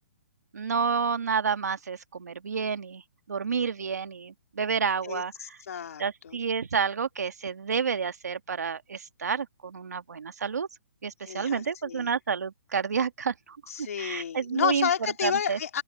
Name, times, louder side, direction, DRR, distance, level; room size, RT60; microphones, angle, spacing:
voice 1, 0.5-3.0 3.3-5.3 6.0-10.7 11.0-13.6 14.0-14.9 15.2-15.6, right 6 dB, 90° right, 1.9 m, -29 dB
voice 2, 5.0-6.4 11.2-12.1 13.7-15.8, left 8 dB, 65° left, 3.0 m, -31 dB
open air
hypercardioid pair, 160°, 9 cm